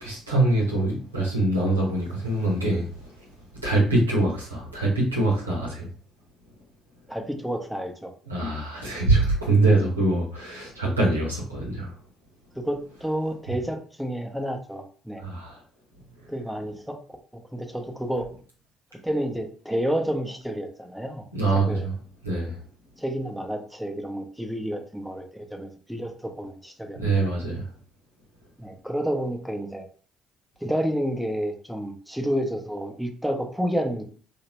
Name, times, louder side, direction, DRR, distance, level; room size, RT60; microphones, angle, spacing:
voice 1, 0.0-3.1 3.6-5.9 8.3-11.9 15.2-15.6 21.3-21.9 22.2-22.6 26.9-27.6, right 2 dB, 90° right, 0.9 m, -24 dB
voice 2, 7.1-8.1 12.5-15.2 16.3-17.0 17.3-18.3 19.0-21.2 21.5-21.9 23.0-27.3 28.6-29.9 30.6-34.0, equal, ahead, 0.7 m, -30 dB
3.2 x 2.8 x 2.9 m
figure-of-eight pair, 50°, 0 cm